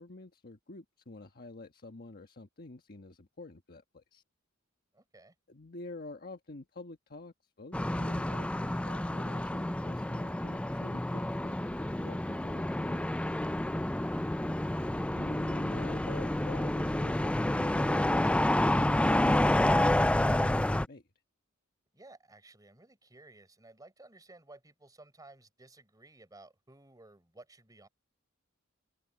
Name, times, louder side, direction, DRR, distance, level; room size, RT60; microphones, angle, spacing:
voice 1, 0.0-4.2 5.5-11.5 12.0-13.2 15.0-21.0, left 2 dB, 45° left, 1.3 m, -48 dB
voice 2, 4.9-5.3 13.9-14.4 21.9-27.9, right 2 dB, 20° right, 4.6 m, -56 dB
sound 1, 7.7-20.9, left 1 dB, 5° left, 0.3 m, -29 dB
head